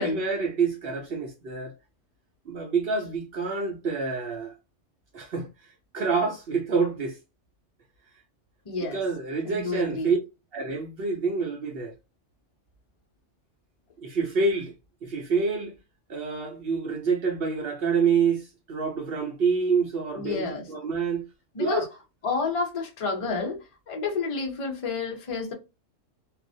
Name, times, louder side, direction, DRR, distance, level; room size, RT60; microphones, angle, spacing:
voice 1, 0.0-1.7 2.5-4.5 5.1-7.2 8.8-10.2 10.5-11.9 14.0-14.7 15.0-15.7 16.1-21.2 21.6-21.9, right 5 dB, 60° right, 0.7 m, -27 dB
voice 2, 8.7-9.0 9.4-10.1 20.2-20.6 21.5-21.9 22.2-25.5, left 4 dB, 35° left, 0.6 m, -30 dB
2.4 x 2.1 x 2.5 m
omnidirectional pair, 1.3 m